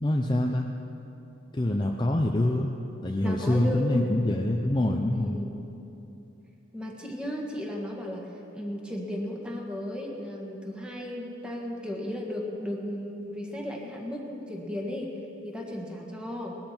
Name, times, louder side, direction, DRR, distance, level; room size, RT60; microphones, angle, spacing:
voice 1, 0.0-0.7 1.5-2.7 3.0-5.4, left 1 dB, 20° left, 2 dB, 0.5 m, -25 dB
voice 2, 3.2-4.1 5.1-5.5 6.7-16.6, left 1 dB, 5° right, -1 dB, 1.6 m, -35 dB
19.5 x 13.0 x 4.4 m, 2.9 s
head